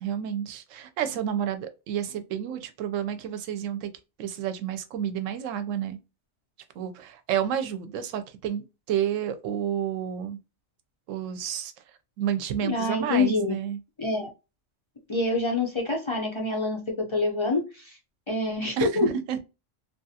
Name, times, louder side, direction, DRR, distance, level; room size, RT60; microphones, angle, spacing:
voice 1, 0.0-3.9 4.2-6.0 6.8-10.4 11.1-11.7 12.2-13.8 18.8-19.4, right 9 dB, 80° right, 0.9 m, -30 dB
voice 2, 12.6-13.6 14.0-14.3 15.1-18.0 18.3-19.1, left 3 dB, 40° left, 0.4 m, -26 dB
2.9 x 2.4 x 2.6 m
omnidirectional pair, 1.3 m